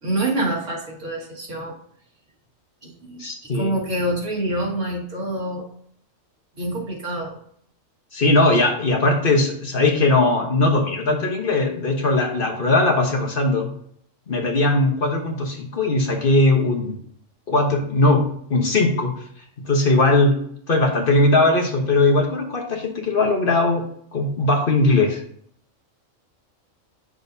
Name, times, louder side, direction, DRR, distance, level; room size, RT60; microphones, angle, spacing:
voice 1, 0.0-1.7 2.8-3.2 3.5-5.7 6.5-7.4, right 1 dB, 65° right, -3 dB, 2.2 m, -26 dB
voice 2, 3.2-3.7 8.1-13.7 14.3-17.0 17.5-18.2 18.5-19.1 19.7-20.3 20.7-23.8 24.1-25.2, left 2 dB, 45° left, 2 dB, 1.2 m, -19 dB
8.8 x 6.3 x 2.7 m, 0.65 s
omnidirectional pair, 1.4 m